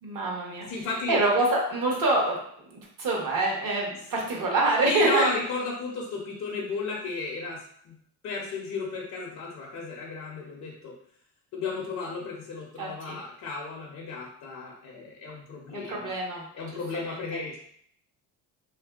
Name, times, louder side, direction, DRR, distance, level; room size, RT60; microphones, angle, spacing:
voice 1, 0.0-0.7 1.1-2.4 2.7-5.3 12.8-13.2 15.7-16.4 17.0-17.2, right 2 dB, 50° right, -2 dB, 0.9 m, -25 dB
voice 2, 0.6-1.2 4.8-8.0 8.2-11.0 11.5-16.1 16.5-17.6, left 4 dB, 40° left, -2 dB, 0.5 m, -34 dB
3.1 x 2.5 x 2.2 m, 0.66 s
cardioid pair, 125°, 43 cm